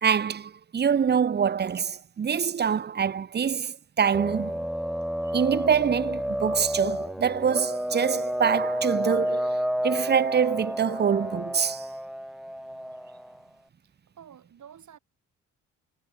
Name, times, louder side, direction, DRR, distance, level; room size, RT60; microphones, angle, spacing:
voice 1, 0.0-4.6 5.3-9.5 9.8-11.9, right 7 dB, 25° right, 0.9 m, -25 dB
sound 1, 4.1-13.4, equal, ahead, 1.1 m, -30 dB
voice 2, 14.2-15.0, right 9 dB, 45° right, 4.7 m, -49 dB
figure-of-eight pair, 45°, 40 cm